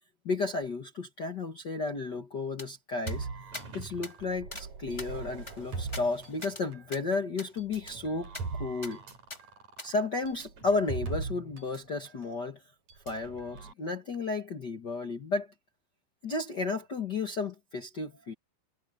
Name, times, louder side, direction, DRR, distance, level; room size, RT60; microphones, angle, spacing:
voice 1, 0.2-3.3 3.7-8.3 8.6-9.0 9.8-12.6 13.0-15.5 16.2-18.3, left 3 dB, 60° left, 1.1 m, -33 dB
sound 1, 2.6-2.7 3.1-3.2 3.5-3.7 4.0-4.1 4.5-4.7 5.0-6.6 6.9-7.0 7.4-7.5 7.9-8.0 8.3-8.5 8.8-8.9 9.3-9.4 9.8-9.9, left 2 dB, 10° left, 1.8 m, -43 dB
sound 2, 3.1-6.9 7.6-11.8 12.1-12.2 12.9-13.7, right 4 dB, 45° right, 5.3 m, -40 dB
omnidirectional pair, 4.7 m